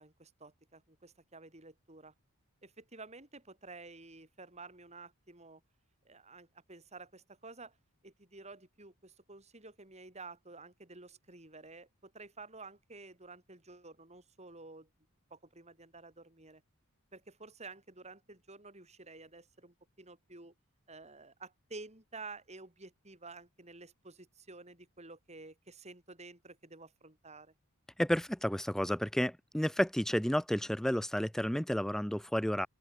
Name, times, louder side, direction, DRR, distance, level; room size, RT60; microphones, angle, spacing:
voice 1, 0.0-2.1 2.6-5.6 6.1-7.7 8.0-14.9 15.3-16.6 17.1-20.5 20.9-27.5, right 3 dB, 30° right, 5.5 m, -51 dB
voice 2, 28.0-32.7, equal, ahead, 0.4 m, -31 dB
open air
head